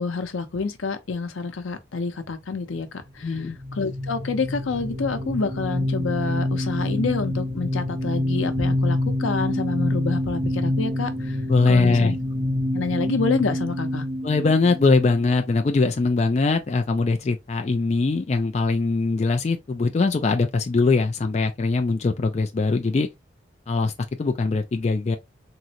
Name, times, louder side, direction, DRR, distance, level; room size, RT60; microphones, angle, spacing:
voice 1, 0.0-3.5 3.7-11.4 11.7-12.2 12.7-14.0, left 4 dB, 90° left, 0.6 m, -28 dB
voice 2, 3.2-3.6 11.5-12.1 14.2-23.1 23.7-23.9 24.2-25.2, left 3 dB, 35° left, 0.3 m, -21 dB
sound 1, 3.3-15.8, left 1 dB, 20° right, 0.8 m, -27 dB
3.7 x 2.0 x 2.8 m
head